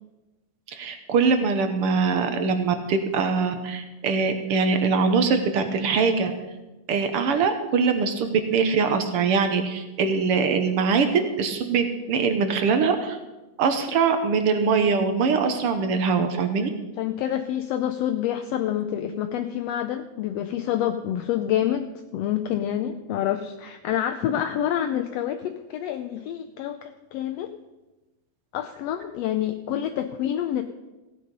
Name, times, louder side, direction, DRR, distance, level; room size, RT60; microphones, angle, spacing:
voice 1, 0.7-6.3 6.9-13.2 13.6-16.7, right 5 dB, 65° right, 7 dB, 1.6 m, -23 dB
voice 2, 17.0-27.5 28.5-30.6, left 10 dB, 80° left, 7 dB, 1.5 m, -27 dB
16.0 x 9.3 x 5.3 m, 1.1 s
omnidirectional pair, 3.4 m